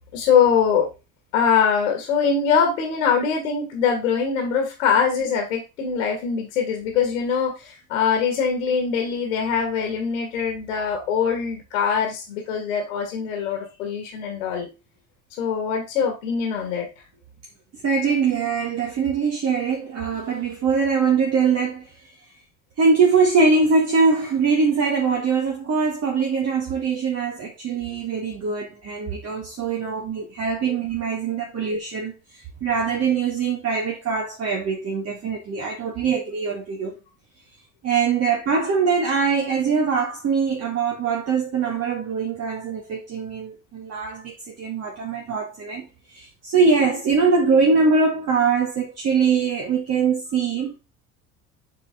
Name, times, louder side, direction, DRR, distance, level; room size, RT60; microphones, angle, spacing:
voice 1, 0.1-0.9 1.3-14.7 15.4-16.9, left 6 dB, 70° left, 1.8 m, -22 dB
voice 2, 17.8-22.1 22.8-37.0 37.8-50.8, right 5 dB, 35° right, 1.5 m, -22 dB
7.9 x 4.5 x 3.5 m
figure-of-eight pair, 60°, 41 cm